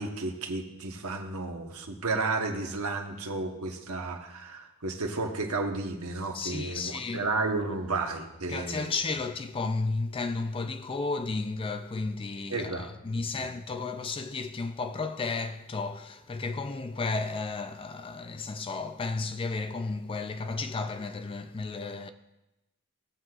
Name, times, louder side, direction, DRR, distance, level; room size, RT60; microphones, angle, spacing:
voice 1, 0.0-9.0 12.5-12.9 13.4-13.5, right 3 dB, 70° right, 1.1 m, -32 dB
voice 2, 6.3-7.3 8.5-22.1, left 3 dB, 25° left, 0.4 m, -33 dB
16.0 x 7.7 x 2.4 m
head